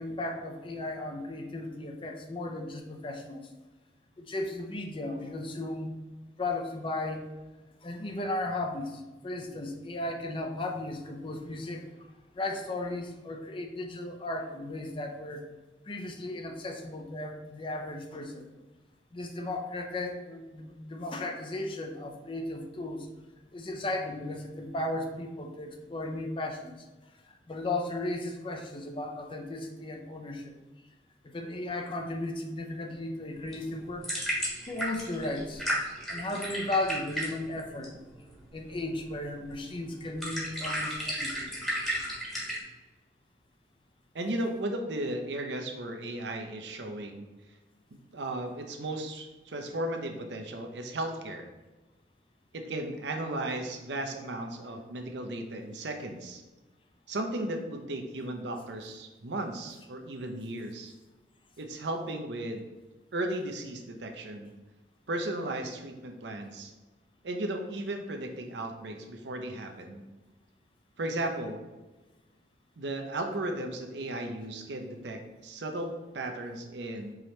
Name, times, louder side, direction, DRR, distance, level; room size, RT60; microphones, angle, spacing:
voice 1, 0.0-3.5 4.2-5.9 6.4-7.2 7.8-15.4 15.8-18.4 19.1-23.1 23.5-26.7 27.2-30.6 31.2-34.1 34.7-35.6 36.1-37.9 38.5-41.5, left 2 dB, 30° left, 3 dB, 0.5 m, -35 dB
sound 1, 33.3-42.6, equal, 5° left, 1.0 m, -34 dB
voice 2, 44.1-47.3 48.1-51.5 52.5-56.4 57.1-60.9 61.6-62.6 63.1-64.5 65.1-66.7 67.2-70.0 71.0-71.6 72.8-77.1, right 1 dB, 75° right, 4 dB, 0.6 m, -35 dB
4.8 x 2.9 x 3.1 m, 1.2 s
head